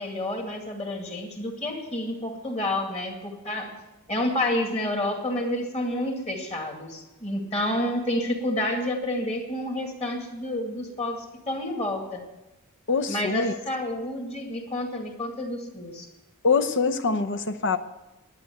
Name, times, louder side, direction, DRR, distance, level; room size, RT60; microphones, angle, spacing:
voice 1, 0.0-3.7 4.1-12.2 13.1-16.1, left 1 dB, 30° left, 2 dB, 2.3 m, -29 dB
voice 2, 12.9-13.5 16.4-17.8, left 4 dB, 55° left, 11 dB, 0.8 m, -24 dB
12.0 x 8.9 x 9.3 m, 1.0 s
head